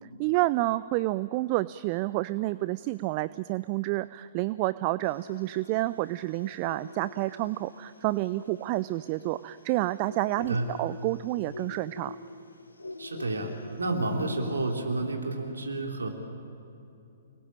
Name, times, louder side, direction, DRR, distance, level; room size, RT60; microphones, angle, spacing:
voice 1, 0.0-12.2, right 18 dB, 35° right, 17 dB, 0.5 m, -29 dB
sound 1, 5.0-14.8, left 2 dB, 80° left, 4.1 m, -44 dB
voice 2, 13.0-13.5 13.8-16.1, right 2 dB, 75° right, 2 dB, 3.2 m, -30 dB
30.0 x 20.0 x 8.8 m, 2.7 s
figure-of-eight pair, 120°, 0 cm